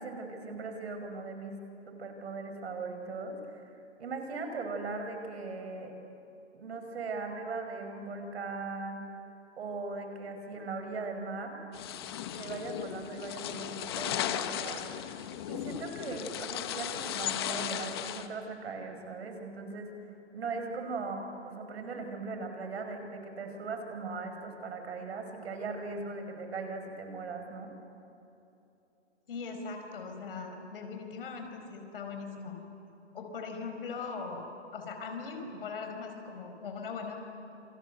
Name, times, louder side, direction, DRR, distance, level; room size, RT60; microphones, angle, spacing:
voice 1, 0.0-1.6 1.9-3.7 4.0-5.9 6.5-9.1 9.6-11.6 12.3-15.2 15.5-19.9 20.3-27.7, right 3 dB, 60° right, 5 dB, 5.4 m, -39 dB
sound 1, 11.7-18.3, left 11 dB, 20° left, 0.8 m, -36 dB
voice 2, 29.3-32.6 33.1-37.1, left 4 dB, 50° left, 4 dB, 5.1 m, -40 dB
28.0 x 26.5 x 8.0 m, 2.9 s
hypercardioid pair, 165°, 36 cm